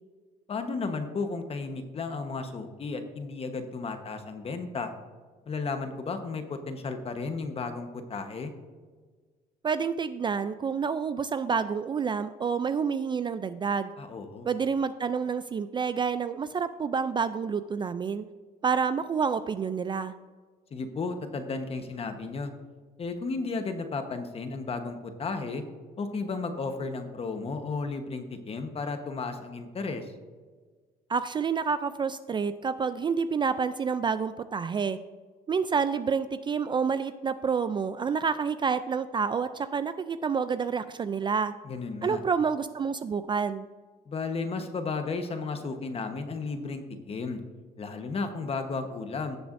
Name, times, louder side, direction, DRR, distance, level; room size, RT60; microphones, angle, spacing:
voice 1, 0.5-4.9 5.5-8.5 14.0-14.5 20.7-22.5 23.0-25.6 26.0-30.1 41.6-42.2 44.1-47.4 47.8-49.4, left 4 dB, 35° left, 7 dB, 1.1 m, -34 dB
voice 2, 9.6-13.9 14.5-18.2 18.6-20.1 31.1-35.0 35.5-41.5 42.0-43.7, right 6 dB, 30° right, 12 dB, 0.3 m, -28 dB
16.5 x 6.8 x 2.6 m, 1.5 s
cardioid pair, 110°, 17 cm